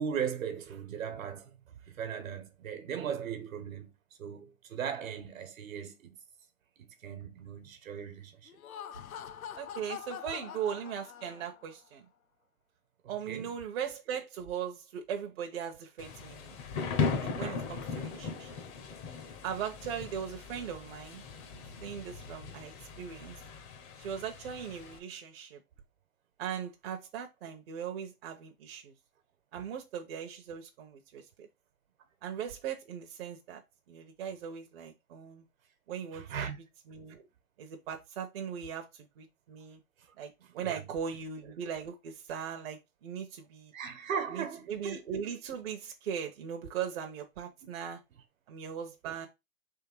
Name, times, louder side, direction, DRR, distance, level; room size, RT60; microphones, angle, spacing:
voice 1, 0.0-1.6 1.8-3.9 4.2-6.2 6.8-8.5 10.3-10.4 13.3-13.5 17.3-17.7 29.5-29.6 36.1-36.6 40.0-40.1 40.4-40.9 43.7-44.8 47.6-47.7 49.0-49.2, right 7 dB, 65° right, 1.3 m, -38 dB
Laughter, 8.5-11.7, left 9 dB, 75° left, 0.7 m, -44 dB
voice 2, 9.5-12.0 13.1-16.5 17.2-18.5 19.4-21.2 21.5-23.4 24.0-25.6 26.4-28.9 29.5-31.5 32.2-33.6 33.9-35.4 35.9-36.2 36.9-37.2 37.6-39.8 40.2-43.7 44.3-48.0 48.5-49.3, right 8 dB, 45° right, 0.9 m, -39 dB
Thunder / Rain, 16.0-25.0, left 5 dB, 25° left, 0.8 m, -38 dB
3.7 x 3.2 x 4.4 m
hypercardioid pair, 135°, 43 cm